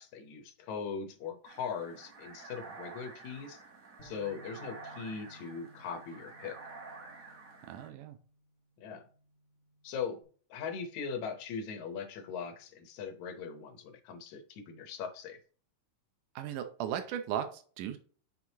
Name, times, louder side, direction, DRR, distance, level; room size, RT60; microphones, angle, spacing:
voice 1, 0.0-3.6 4.0-6.6 8.8-9.0 9.8-10.2 10.5-15.4, left 6 dB, 70° left, 6 dB, 2.2 m, -40 dB
sound 1, 1.4-7.9, right 4 dB, 55° right, 0.9 m, -50 dB
Bass guitar, 4.0-10.2, equal, 30° left, 1.7 m, -59 dB
voice 2, 7.7-8.2 16.4-18.0, right 10 dB, 90° right, 8 dB, 2.3 m, -36 dB
6.1 x 6.0 x 2.8 m, 0.41 s
omnidirectional pair, 3.6 m